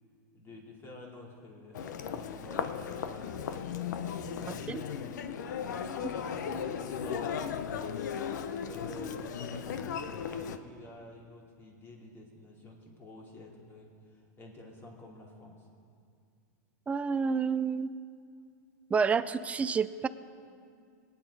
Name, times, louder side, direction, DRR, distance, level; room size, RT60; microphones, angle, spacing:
voice 1, 0.3-3.7 4.3-8.0 8.6-15.7, left 1 dB, 25° left, -1 dB, 2.8 m, -50 dB
Human voice, 1.7-10.6, left 7 dB, 80° left, 0.8 m, -36 dB
voice 2, 16.9-17.9 18.9-20.1, right 5 dB, 15° right, 13 dB, 0.4 m, -29 dB
21.5 x 9.4 x 4.8 m, 2.3 s
supercardioid pair, 130°, 10 cm